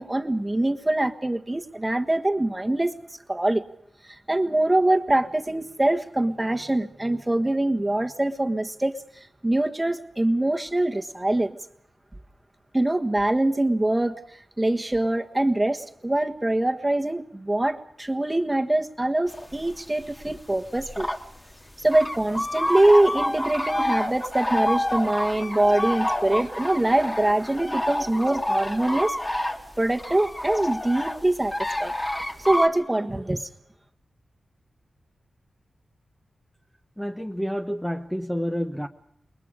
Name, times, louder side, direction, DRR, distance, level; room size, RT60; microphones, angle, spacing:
voice 1, 0.0-2.9 3.3-3.6 4.0-8.9 9.4-11.6 12.7-14.2 14.6-21.1 21.8-29.4 29.8-31.5 31.8-31.9 32.4-33.5, right 1 dB, 15° right, 1.5 m, -23 dB
sound 1, 19.3-19.8 20.2-21.2 21.5-21.6 21.9-32.7, left 1 dB, 20° left, 2.0 m, -28 dB
voice 2, 37.0-38.9, equal, 5° left, 1.1 m, -29 dB
28.5 x 22.0 x 5.0 m
wide cardioid pair, 100°, 0 cm